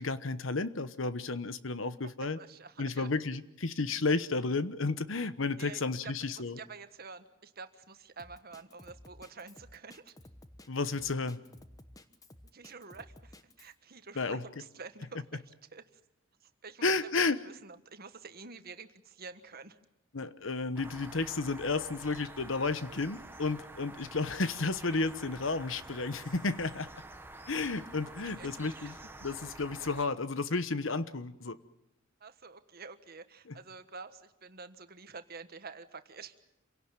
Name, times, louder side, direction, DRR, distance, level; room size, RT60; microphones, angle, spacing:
voice 1, 0.0-2.4 2.8-6.6 10.7-11.4 14.1-14.4 16.8-17.4 20.1-26.9 27.5-28.9 29.2-31.6 33.5-33.6, left 3 dB, 70° left, 13 dB, 1.1 m, -32 dB
voice 2, 2.0-3.1 5.6-10.1 12.5-15.8 16.4-16.9 17.4-19.8 28.0-28.1 28.4-28.9 32.2-36.3, right 4 dB, 50° right, 10 dB, 1.4 m, -48 dB
Drum kit, 8.2-13.7, left 1 dB, 20° left, 1.2 m, -54 dB
sound 1, 20.7-30.1, right 2 dB, 10° right, 1.3 m, -49 dB
27.5 x 17.5 x 9.0 m, 0.88 s
head